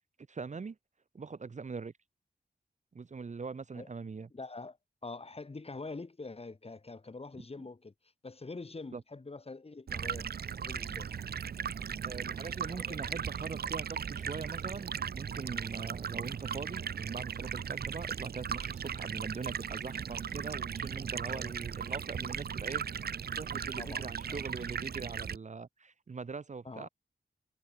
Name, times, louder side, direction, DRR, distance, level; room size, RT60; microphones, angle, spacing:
voice 1, 0.3-0.8 1.1-1.9 2.9-4.3 8.9-9.0 12.0-22.8 23.4-26.9, right 4 dB, 45° right, 1.0 m, -42 dB
voice 2, 4.3-4.8 5.0-7.9 8.2-10.3 10.6-11.1 12.7-13.0 21.2-21.5 23.8-24.4 26.6-26.9, left 3 dB, 35° left, 3.0 m, -45 dB
Stream, 9.9-25.4, right 7 dB, 65° right, 0.7 m, -37 dB
wide cardioid pair, 95°, 18 cm